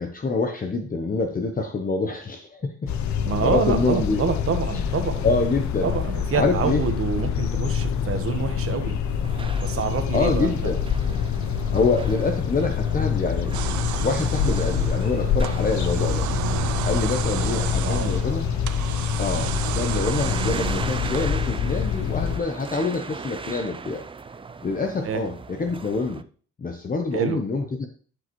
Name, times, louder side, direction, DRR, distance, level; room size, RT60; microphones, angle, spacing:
voice 1, 0.0-2.9 3.4-4.2 5.2-5.9 6.3-6.8 10.1-10.8 11.7-16.3 16.8-18.5 19.2-24.0 24.6-26.2 26.6-27.9, left 3 dB, 30° left, 4 dB, 0.9 m, -26 dB
sound 1, 2.9-22.4, left 7 dB, 70° left, 0.8 m, -26 dB
voice 2, 3.2-5.3 5.8-9.0 9.6-10.5 17.2-18.1 25.0-25.2 27.1-27.4, right 6 dB, 45° right, 6 dB, 1.3 m, -27 dB
sound 2, 9.0-26.2, right 4 dB, 20° right, 0.4 m, -39 dB
sound 3, 13.5-21.8, right 14 dB, 75° right, 0.5 m, -33 dB
11.5 x 4.9 x 3.1 m, 0.44 s
cardioid pair, 90°, 30 cm